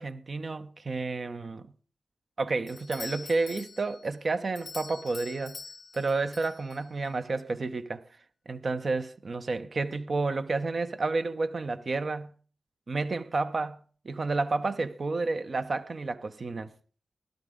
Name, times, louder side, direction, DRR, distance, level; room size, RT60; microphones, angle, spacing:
voice 1, 0.0-1.7 2.4-5.6 5.9-8.0 8.5-12.3 12.9-16.7, right 3 dB, 55° right, 0.7 m, -31 dB
Doorbell, 2.7-7.1, left 4 dB, 60° left, 0.6 m, -45 dB
15.5 x 11.5 x 3.7 m
cardioid pair, 45°, 0 cm